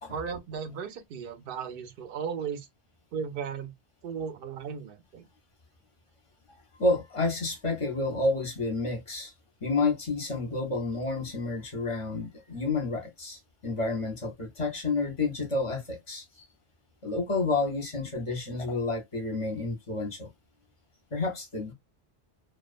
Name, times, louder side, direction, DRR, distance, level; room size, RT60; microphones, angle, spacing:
voice 1, 0.1-2.7 3.1-3.7 4.0-5.3, right 6 dB, 60° right, 0.7 m, -36 dB
voice 2, 6.8-9.3 9.6-16.5 17.0-20.3 21.1-21.7, left 3 dB, 30° left, 0.8 m, -30 dB
2.3 x 2.2 x 2.5 m
omnidirectional pair, 1.1 m